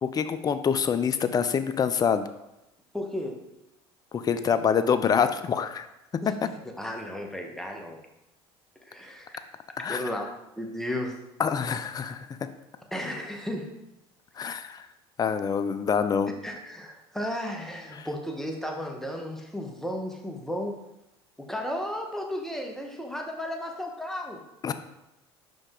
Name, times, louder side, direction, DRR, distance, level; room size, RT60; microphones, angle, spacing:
voice 1, 0.0-2.3 4.1-5.9 9.8-10.0 11.4-12.3 14.4-14.8 15.2-16.3 18.0-18.1 24.6-24.7, left 7 dB, 30° left, 11 dB, 0.5 m, -26 dB
voice 2, 2.9-3.4 6.2-8.0 8.9-9.4 9.9-10.3 10.6-11.2 12.9-13.7 16.4-20.8 21.4-24.4, left 1 dB, 5° left, 2 dB, 1.2 m, -34 dB
5.4 x 5.1 x 3.7 m, 0.89 s
hypercardioid pair, 80°, 13 cm